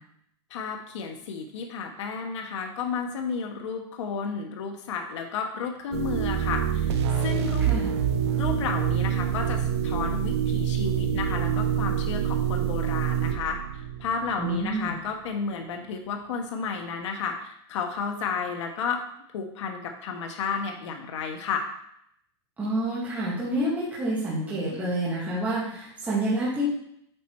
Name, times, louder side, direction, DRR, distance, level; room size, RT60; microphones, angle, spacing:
voice 1, 0.5-6.9 7.2-7.7 8.3-19.0 19.3-21.7, left 5 dB, 85° left, 3 dB, 1.2 m, -32 dB
sound 1, 5.9-14.6, right 9 dB, 65° right, 0.8 m, -26 dB
voice 2, 14.4-14.9 22.6-26.6, right 1 dB, 10° right, -9 dB, 2.0 m, -28 dB
8.2 x 4.3 x 4.6 m, 0.72 s
supercardioid pair, 170°, 15 cm